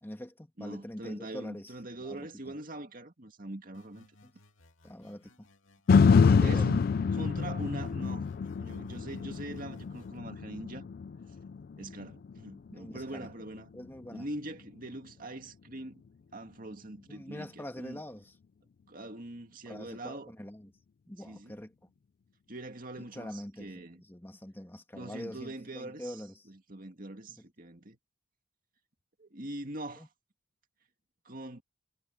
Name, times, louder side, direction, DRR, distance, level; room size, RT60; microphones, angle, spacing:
voice 1, 0.0-1.7 2.0-2.3 4.2-4.3 4.8-5.3 6.2-6.7 12.7-13.3 13.7-14.3 17.1-18.3 19.7-20.7 21.1-21.9 23.1-23.8 24.1-26.5 27.3-27.4 30.0-30.1, equal, 10° left, 1.8 m, -44 dB
voice 2, 0.6-4.1 6.4-8.3 8.6-10.9 11.3-11.4 11.8-13.7 14.1-16.0 16.3-18.0 18.9-20.3 21.2-21.6 22.5-24.0 24.9-28.0 29.2-30.1 31.2-31.6, right 1 dB, 45° right, 2.2 m, -43 dB
sound 1, 3.7-6.7 7.2-10.2, left 2 dB, 80° left, 2.7 m, -62 dB
sound 2, 5.9-14.0 14.5-14.6, left 5 dB, 50° left, 0.3 m, -27 dB
head